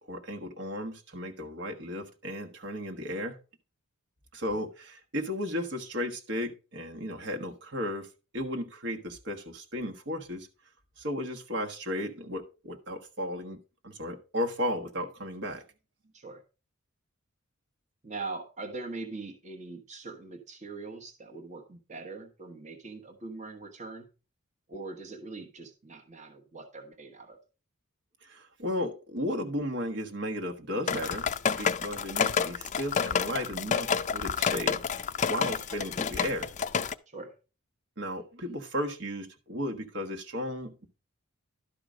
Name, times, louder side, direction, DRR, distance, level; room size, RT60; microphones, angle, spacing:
voice 1, 0.1-3.4 4.3-8.1 8.3-10.5 11.0-15.6 28.2-31.3 31.6-34.8 35.3-36.5 38.0-40.9, equal, 60° right, 1.4 m, -34 dB
voice 2, 18.0-24.1 24.7-27.4 37.1-37.3, right 3 dB, 35° right, 1.2 m, -42 dB
sound 1, 30.9-36.9, left 6 dB, 35° left, 0.5 m, -29 dB
12.0 x 4.9 x 5.0 m
head